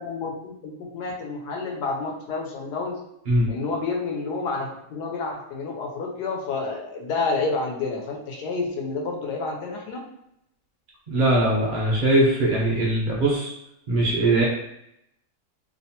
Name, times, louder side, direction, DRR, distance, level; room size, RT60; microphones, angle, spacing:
voice 1, 0.0-3.0 3.5-10.0, left 3 dB, 90° left, 1 dB, 1.2 m, -29 dB
voice 2, 11.1-13.5 13.9-14.4, right 1 dB, 85° right, -4 dB, 0.4 m, -21 dB
2.8 x 2.1 x 2.7 m, 0.80 s
omnidirectional pair, 1.7 m